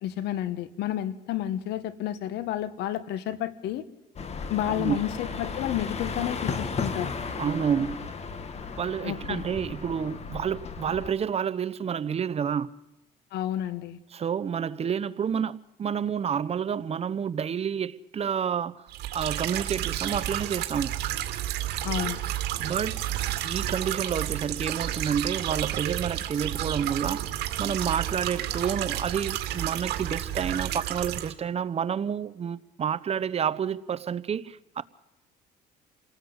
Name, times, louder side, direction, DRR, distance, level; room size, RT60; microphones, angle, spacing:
voice 1, 0.0-3.8 4.5-7.1 9.0-9.5 13.3-14.0 21.8-22.2, left 12 dB, 80° left, 1.4 m, -31 dB
sound 1, 4.2-11.1, left 5 dB, 40° left, 2.0 m, -35 dB
voice 2, 4.7-5.0 7.4-8.1 8.8-12.7 14.1-18.9 19.1-21.0 22.6-23.0 23.4-27.2 27.6-34.8, right 7 dB, 35° right, 0.8 m, -29 dB
sound 2, 18.9-31.3, right 13 dB, 75° right, 2.3 m, -31 dB
28.5 x 18.5 x 8.1 m
cardioid pair, 110°, 17 cm